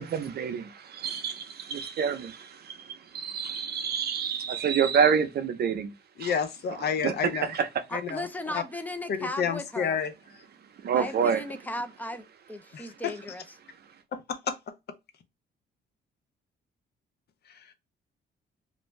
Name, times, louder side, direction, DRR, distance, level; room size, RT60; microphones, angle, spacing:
voice 1, 0.0-2.9 3.1-5.9 6.2-6.3 7.0-7.7 10.8-11.4, right 7 dB, 55° right, 0.5 m, -27 dB
voice 2, 6.2-7.5 7.9-8.3 8.5-8.6 9.4-10.1 12.7-13.1 14.1-14.2 14.5-14.6, left 7 dB, 55° left, 0.6 m, -29 dB
voice 3, 7.9-10.0 10.9-13.4, left 1 dB, 10° left, 0.5 m, -36 dB
2.5 x 2.2 x 3.0 m
cardioid pair, 90°, 20 cm